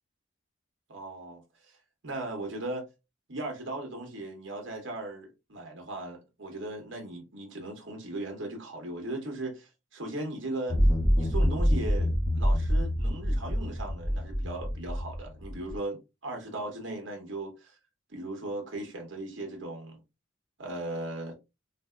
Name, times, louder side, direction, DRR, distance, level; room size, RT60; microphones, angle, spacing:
voice 1, 0.9-1.4 1.7-1.8 2.0-2.9 3.3-10.8 11.2-17.8 18.1-20.0 20.6-21.3, right 2 dB, 65° right, 1.0 m, -37 dB
sound 1, 10.7-15.7, equal, 10° left, 0.5 m, -26 dB
3.4 x 2.6 x 2.3 m
head